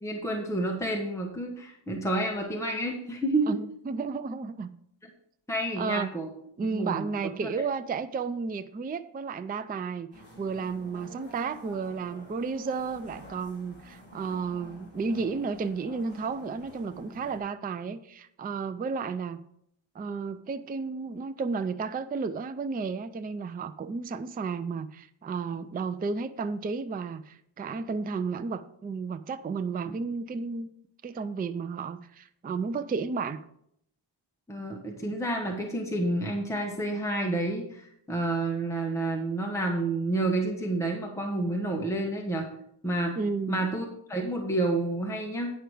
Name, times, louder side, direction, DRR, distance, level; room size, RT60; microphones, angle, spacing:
voice 1, 0.0-3.6 5.5-6.3 6.7-7.1 7.4-7.5 29.8-29.9 34.5-42.5 42.8-43.2 43.5-45.5, right 2 dB, 5° left, 1 dB, 1.0 m, -29 dB
voice 2, 3.5-4.7 5.8-6.1 6.6-10.1 10.4-19.4 20.0-30.7 31.0-33.4 43.2-43.6, right 5 dB, 20° right, 11 dB, 0.3 m, -32 dB
sound 1, 10.1-17.4, left 1 dB, 25° left, 2.9 m, -49 dB
9.1 x 5.7 x 4.9 m, 0.73 s
wide cardioid pair, 130°, 47 cm